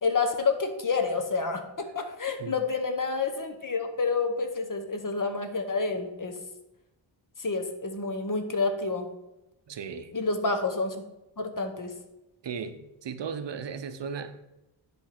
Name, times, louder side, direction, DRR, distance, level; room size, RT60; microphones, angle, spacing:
voice 1, 0.0-6.4 7.4-9.1 10.1-11.0 11.4-11.9, left 4 dB, 40° left, 1.0 m, -29 dB
voice 2, 9.7-10.2 12.4-14.3, right 6 dB, 60° right, 0.7 m, -36 dB
10.5 x 3.5 x 5.8 m
wide cardioid pair, 120°, 48 cm